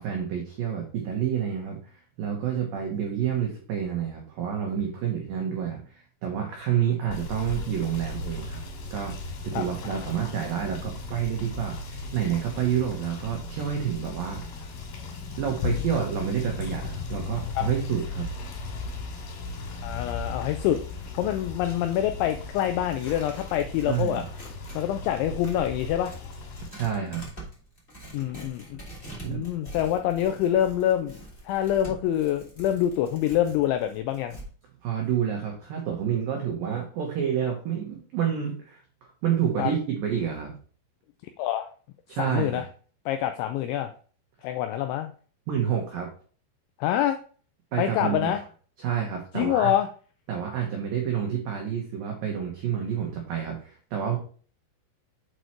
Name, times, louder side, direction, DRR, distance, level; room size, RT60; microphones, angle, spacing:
voice 1, 0.0-8.6 8.9-14.4 15.4-18.3 23.9-24.2 26.7-27.2 29.2-29.4 34.8-38.8 39.2-40.5 42.1-42.6 45.5-46.1 47.7-48.3 48.8-49.7 50.3-54.2, right 8 dB, 85° right, 1 dB, 2.0 m, -29 dB
Rain / Motor vehicle (road), 7.1-26.7, left 3 dB, 60° left, 4.1 m, -36 dB
voice 2, 9.5-10.0 17.6-17.7 19.8-20.8 21.2-24.2 24.7-26.2 28.1-28.8 29.3-31.2 31.4-34.4 39.6-39.7 41.4-41.7 42.2-42.6 43.1-43.9 44.4-45.1 46.8-47.2 47.8-48.4 49.3-49.9, left 11 dB, 85° left, 8 dB, 2.6 m, -26 dB
Tearing, 21.3-24.9 25.2-34.5, right 1 dB, 25° left, 1.2 m, -45 dB
8.0 x 4.2 x 4.5 m, 0.42 s
omnidirectional pair, 5.9 m